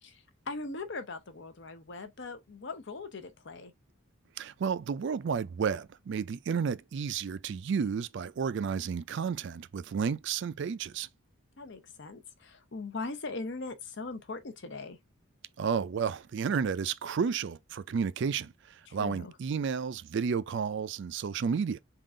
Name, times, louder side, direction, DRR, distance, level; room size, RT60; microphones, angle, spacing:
voice 1, 0.0-3.7 11.6-15.0 18.9-19.3, left 3 dB, 55° left, 0.7 m, -40 dB
voice 2, 4.4-11.1 15.6-21.8, right 6 dB, 55° right, 0.3 m, -32 dB
3.7 x 2.4 x 3.7 m
head